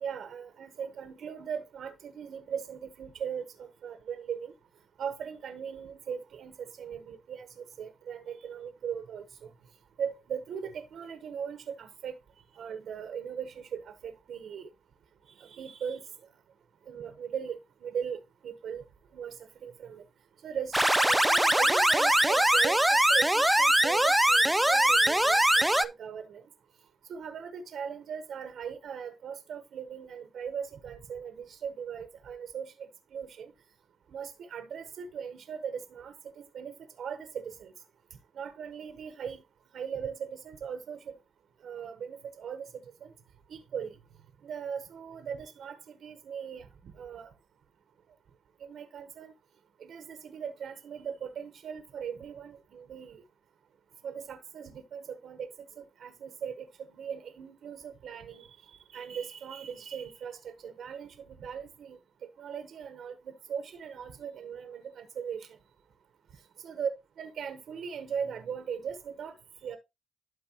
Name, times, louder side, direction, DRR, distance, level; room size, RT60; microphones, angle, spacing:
voice 1, 0.0-4.5 5.0-7.5 7.8-9.5 10.0-12.1 12.6-14.7 15.4-16.0 16.9-18.2 18.4-18.8 19.1-19.3 19.6-20.0 20.4-26.4 27.1-33.5 34.1-37.7 38.4-39.4 39.7-41.1 41.6-42.7 43.0-43.1 43.5-43.9 44.4-46.7 47.0-47.3 48.6-49.3 49.8-53.2 54.0-55.5 55.8-56.6 56.9-62.0 62.4-65.5 66.6-66.9 67.2-69.3 69.6-69.8, right 7 dB, 70° right, 1.2 m, -39 dB
sound 1, 20.7-25.9, right 1 dB, 5° right, 0.5 m, -22 dB
12.5 x 4.7 x 3.0 m
cardioid pair, 100°, 0 cm